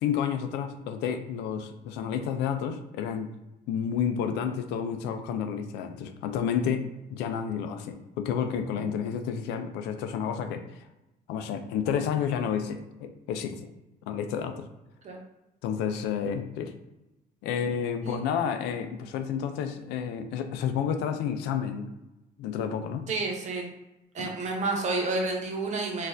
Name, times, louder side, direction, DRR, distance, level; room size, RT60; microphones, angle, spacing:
voice 1, 0.0-3.3 3.7-10.6 11.3-13.7 14.1-14.7 15.6-16.7 17.4-21.9 22.4-23.1 24.2-24.3, left 7 dB, 85° left, 7 dB, 0.4 m, -30 dB
voice 2, 23.1-23.7 24.1-26.1, right 3 dB, 45° right, 1 dB, 0.8 m, -30 dB
4.1 x 2.4 x 2.5 m, 0.97 s
cardioid pair, 110°, 17 cm